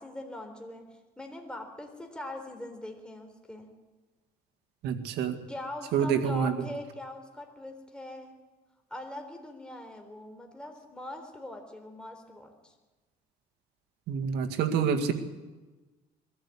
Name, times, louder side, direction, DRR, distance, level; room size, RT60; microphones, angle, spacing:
voice 1, 0.0-3.7 5.5-8.3 8.9-12.7, left 1 dB, 5° left, 3 dB, 3.7 m, -42 dB
voice 2, 4.8-5.4 5.9-6.5 14.1-15.1, right 7 dB, 80° right, 6 dB, 2.0 m, -27 dB
22.0 x 14.5 x 8.5 m, 1.2 s
cardioid pair, 110°, 17 cm